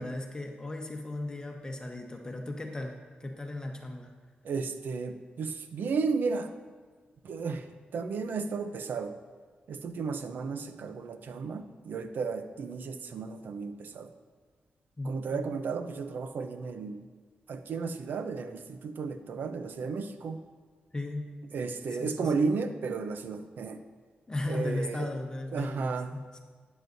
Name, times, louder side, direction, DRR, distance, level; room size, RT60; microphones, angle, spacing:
voice 1, 0.0-2.9 3.2-4.1 15.0-15.4 20.9-21.3 22.0-22.5 24.3-26.4, left 2 dB, 25° left, 2 dB, 1.1 m, -36 dB
voice 2, 4.4-6.5 7.2-7.7 7.9-9.1 9.7-14.1 15.0-17.0 17.5-20.4 21.5-23.8 24.5-25.1 25.5-26.1, right 4 dB, 75° right, 8 dB, 0.7 m, -33 dB
12.0 x 9.3 x 2.7 m, 1.5 s
cardioid pair, 80°, 3 cm